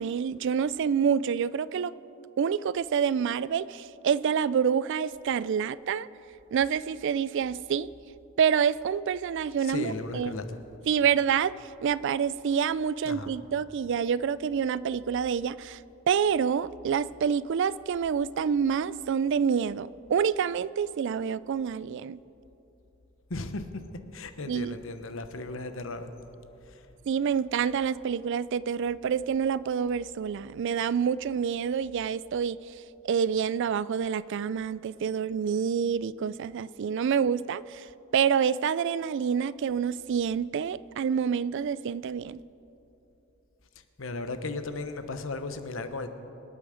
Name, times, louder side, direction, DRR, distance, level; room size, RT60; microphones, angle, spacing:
voice 1, 0.0-1.9 2.4-6.1 6.5-7.9 8.4-10.3 10.9-11.5 11.8-15.8 16.1-22.2 24.5-24.7 27.1-32.6 33.0-37.9 38.1-42.4, right 7 dB, 60° right, 18 dB, 0.3 m, -27 dB
voice 2, 9.6-10.5 13.1-13.3 23.3-23.8 24.1-26.1 44.0-46.1, left 3 dB, 70° left, 9 dB, 1.0 m, -35 dB
25.0 x 8.7 x 5.0 m, 2.9 s
head